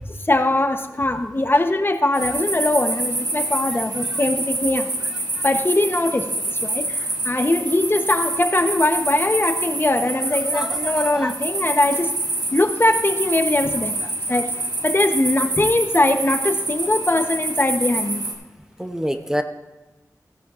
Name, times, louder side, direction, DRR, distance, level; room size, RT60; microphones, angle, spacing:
voice 1, 0.3-4.9 5.4-6.3 6.6-12.1 12.5-14.5 14.8-18.3, left 2 dB, 35° left, 7 dB, 0.8 m, -21 dB
sound 1, 2.1-18.3, right 2 dB, 75° right, 1.5 m, -26 dB
voice 2, 10.5-11.3 18.8-19.4, equal, 10° right, 7 dB, 0.7 m, -27 dB
15.5 x 10.5 x 2.4 m, 1.1 s
wide cardioid pair, 60°, 7 cm